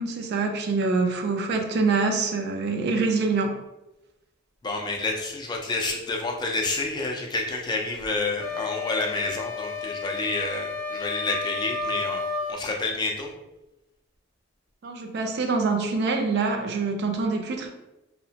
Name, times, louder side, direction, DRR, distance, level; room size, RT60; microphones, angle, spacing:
voice 1, 0.0-3.6 14.8-17.7, right 4 dB, 55° right, 4 dB, 0.4 m, -25 dB
voice 2, 4.6-12.2 12.5-13.3, left 3 dB, 20° left, 1 dB, 0.3 m, -29 dB
sound 1, 8.4-12.6, left 4 dB, 90° left, 0.4 m, -32 dB
2.8 x 2.1 x 2.7 m, 0.93 s
head